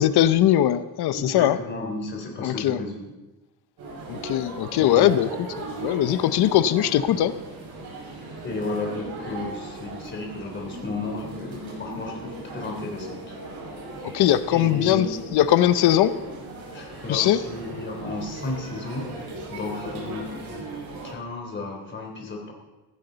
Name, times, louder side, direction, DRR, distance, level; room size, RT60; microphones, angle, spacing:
voice 1, 0.0-1.6 2.4-2.8 4.1-5.3 5.8-7.3 14.1-15.1 15.3-16.1 17.1-17.4, left 12 dB, 85° left, 13 dB, 0.7 m, -20 dB
voice 2, 1.1-3.1 4.7-5.2 7.1-7.2 8.4-13.3 14.5-15.1 16.7-19.1 19.5-20.6 21.0-22.5, left 3 dB, 30° left, 1 dB, 3.2 m, -33 dB
sound 1, 3.8-21.1, right 2 dB, 80° right, 6.1 m, -38 dB
15.5 x 15.0 x 4.0 m, 1.1 s
cardioid pair, 165°, 38 cm